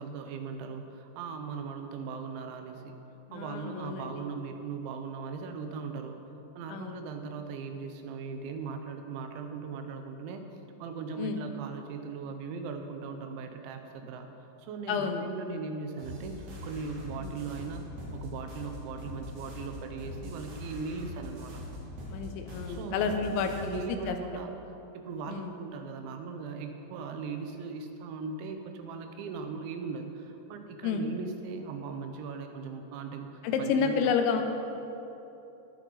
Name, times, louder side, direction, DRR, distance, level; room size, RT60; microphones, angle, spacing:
voice 1, 0.0-3.0 3.3-6.2 6.6-10.5 10.8-14.3 14.6-17.8 18.1-21.6 22.6-24.5 24.9-34.1, right 5 dB, 85° right, 6 dB, 3.2 m, -39 dB
voice 2, 3.3-4.2 6.7-7.0 11.2-11.4 14.9-15.2 17.2-17.3 22.1-24.2 25.3-25.5 30.8-31.1 33.4-34.4, left 6 dB, 85° left, 6 dB, 3.1 m, -30 dB
sound 1, 16.0-23.9, left 1 dB, 70° right, 4.5 m, -42 dB
20.0 x 7.5 x 4.0 m, 3.0 s
omnidirectional pair, 5.2 m